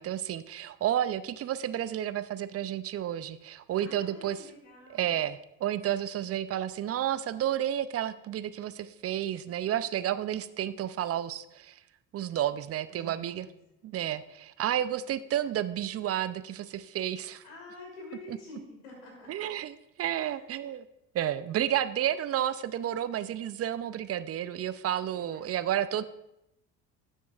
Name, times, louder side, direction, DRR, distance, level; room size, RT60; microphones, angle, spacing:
voice 1, 0.0-4.4 4.9-11.8 12.1-13.5 13.8-17.4 19.3-20.9 21.1-26.0, right 11 dB, 35° right, 14 dB, 0.5 m, -31 dB
voice 2, 3.8-5.2 12.9-13.6 17.4-19.5 20.1-20.4 25.1-25.9, left 2 dB, 85° left, -2 dB, 3.2 m, -48 dB
12.0 x 7.3 x 2.4 m, 0.88 s
hypercardioid pair, 65°, 42 cm